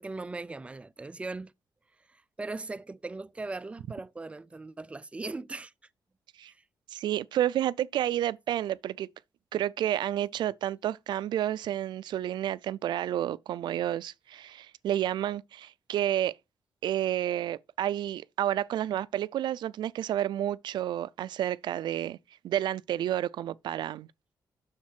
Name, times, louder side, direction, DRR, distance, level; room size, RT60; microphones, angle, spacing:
voice 1, 0.0-1.5 2.1-5.7 6.4-6.6, right 3 dB, 15° right, 0.4 m, -39 dB
voice 2, 6.9-9.1 9.5-16.3 16.8-22.2 22.4-24.1, right 11 dB, 85° right, 0.4 m, -30 dB
7.3 x 6.5 x 4.4 m
wide cardioid pair, 135°, 8 cm